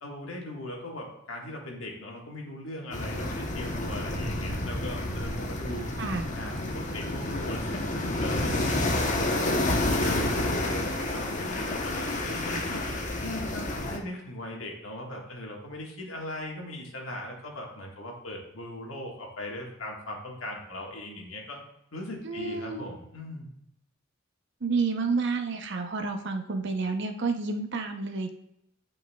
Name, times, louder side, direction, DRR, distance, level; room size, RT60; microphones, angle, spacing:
voice 1, 0.0-5.9 6.3-8.8 9.2-12.8 13.2-21.6 21.9-23.5, left 1 dB, 90° left, 0 dB, 1.6 m, -39 dB
sound 1, 2.9-14.0, left 1 dB, 40° left, 0.9 m, -29 dB
voice 2, 22.2-22.8 24.6-28.3, right 4 dB, 60° right, 5 dB, 0.7 m, -30 dB
9.2 x 5.3 x 2.3 m, 0.81 s
head